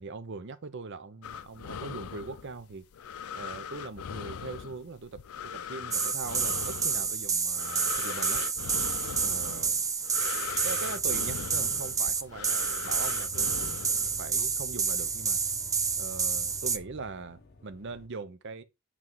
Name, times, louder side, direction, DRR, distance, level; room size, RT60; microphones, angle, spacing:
voice 1, 0.0-2.8 3.3-8.4 9.2-9.8 10.6-13.8 14.2-15.4 16.0-18.6, right 4 dB, 55° right, 0.6 m, -41 dB
sound 1, 1.2-14.5, left 7 dB, 75° left, 0.4 m, -40 dB
sound 2, 5.9-16.8, right 5 dB, 15° right, 0.4 m, -29 dB
sound 3, 10.5-18.1, left 2 dB, 45° left, 1.0 m, -50 dB
7.4 x 3.3 x 3.9 m
head